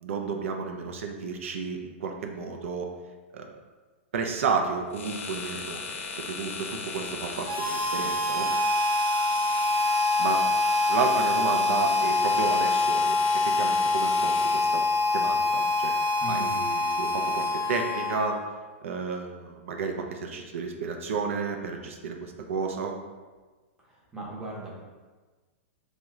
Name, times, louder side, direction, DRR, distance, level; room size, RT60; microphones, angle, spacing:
voice 1, 0.0-2.9 3.3-3.5 4.1-8.5 10.2-10.4 10.9-14.8 15.1-16.0 16.3-18.4 18.8-23.0, right 5 dB, 80° right, 3 dB, 0.4 m, -32 dB
sound 1, 4.9-15.0, left 5 dB, 80° left, 0.5 m, -39 dB
Harmonica, 7.4-18.5, left 2 dB, 45° right, 0.7 m, -25 dB
voice 2, 16.2-16.6 23.9-24.8, right 1 dB, 10° right, -5 dB, 0.7 m, -38 dB
2.9 x 2.1 x 3.5 m, 1.3 s
hypercardioid pair, 150°, 7 cm